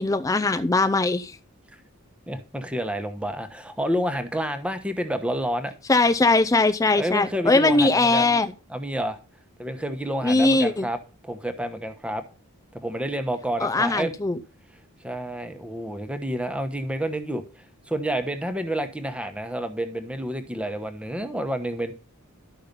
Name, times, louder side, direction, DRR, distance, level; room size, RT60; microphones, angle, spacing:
voice 1, 0.0-1.4 5.9-8.5 10.2-10.9 13.6-14.4, left 2 dB, 15° left, 0.4 m, -20 dB
voice 2, 2.3-5.7 6.9-8.3 8.7-9.2 9.6-11.0 11.2-12.2 12.7-14.1 15.0-17.4 17.9-21.9, equal, 5° right, 1.0 m, -29 dB
12.0 x 5.6 x 5.2 m
head